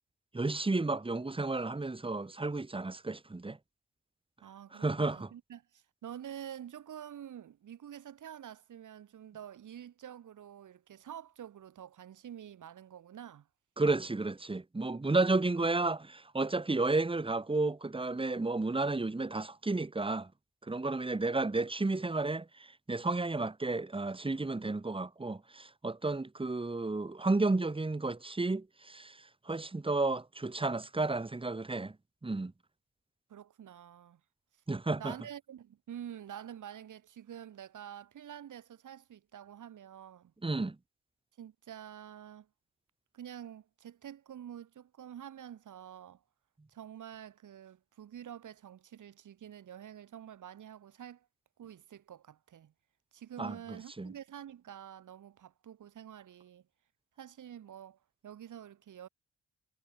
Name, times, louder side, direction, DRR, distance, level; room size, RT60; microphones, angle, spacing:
voice 1, 0.3-3.6 4.7-5.3 13.8-20.3 20.7-29.2 29.5-31.9 32.2-32.5 34.7-35.2 40.4-40.8 53.4-54.1, right 3 dB, 15° right, 1.9 m, -32 dB
voice 2, 4.4-13.5 33.3-34.2 35.0-40.3 41.4-42.5 43.1-46.2 46.7-51.3 51.6-52.7 53.1-56.6 57.2-59.1, right 10 dB, 70° right, 6.1 m, -48 dB
cardioid pair, 70°, 32 cm